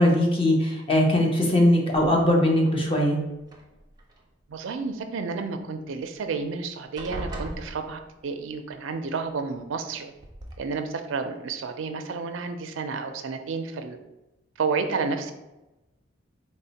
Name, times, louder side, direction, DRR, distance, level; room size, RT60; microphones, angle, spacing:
voice 1, 0.0-3.2, left 1 dB, 30° left, -1 dB, 0.7 m, -20 dB
sound 1, 2.0-2.5 3.4-4.2 6.0-6.1 6.4-6.6 7.0-8.4 9.5-9.6 10.2-10.5, right 1 dB, 20° right, 0.5 m, -39 dB
voice 2, 4.5-10.1 10.6-14.0 14.6-15.3, right 4 dB, 75° right, 7 dB, 0.4 m, -31 dB
4.1 x 2.1 x 4.0 m, 0.98 s
head